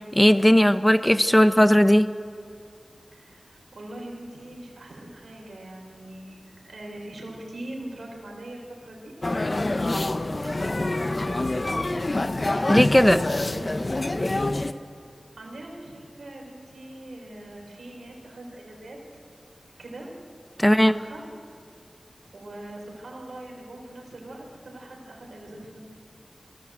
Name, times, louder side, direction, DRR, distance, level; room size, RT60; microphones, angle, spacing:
voice 1, 0.1-2.1 12.7-13.2 20.6-20.9, equal, 10° left, 12 dB, 0.8 m, -17 dB
voice 2, 3.1-9.1 10.0-12.1 13.4-13.8 15.4-19.0 19.8-20.1 20.6-21.2 22.3-25.8, right 1 dB, 80° right, -1 dB, 5.0 m, -42 dB
sound 1, 9.2-14.7, left 2 dB, 40° left, 0.8 m, -26 dB
23.0 x 15.5 x 7.9 m, 2.2 s
wide cardioid pair, 55°, 0 cm